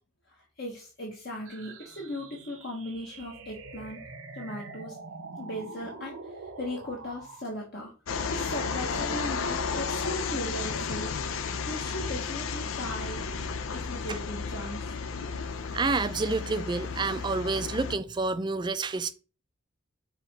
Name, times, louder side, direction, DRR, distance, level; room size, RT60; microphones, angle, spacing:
voice 1, 0.3-4.0 4.3-5.0 5.4-7.9 8.3-11.1 11.7-13.2 13.7-15.0, left 1 dB, 55° left, 1.2 m, -38 dB
sound 1, 1.5-7.4, right 3 dB, 85° right, 1.0 m, -44 dB
sound 2, 8.1-18.0, left 5 dB, 80° left, 0.6 m, -33 dB
voice 2, 15.7-19.1, right 3 dB, 20° right, 0.3 m, -29 dB
5.7 x 3.0 x 5.4 m
head